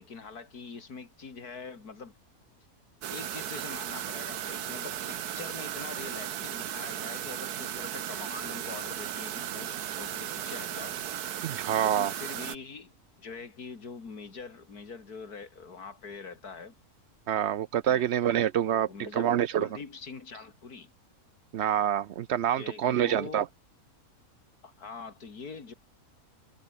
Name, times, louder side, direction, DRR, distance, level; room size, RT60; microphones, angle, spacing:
voice 1, 0.0-2.1 3.1-11.0 11.8-12.9 13.2-16.7 17.8-18.0 18.7-20.9 22.6-23.4 24.6-25.7, left 5 dB, 80° left, 3.2 m, -44 dB
sound 1, 3.0-12.6, right 10 dB, 85° right, 1.5 m, -36 dB
voice 2, 11.4-12.1 17.3-19.7 21.5-23.5, right 10 dB, 65° right, 0.7 m, -27 dB
omnidirectional pair, 1.6 m